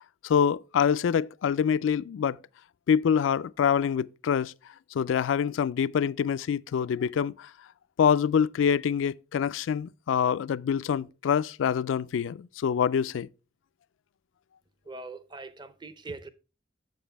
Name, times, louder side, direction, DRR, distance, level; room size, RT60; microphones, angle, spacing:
voice 1, 0.2-2.4 2.9-4.5 4.9-7.5 8.0-13.3, left 7 dB, 85° left, 0.3 m, -25 dB
voice 2, 14.9-16.3, right 3 dB, 25° right, 0.5 m, -41 dB
7.9 x 7.2 x 3.3 m
head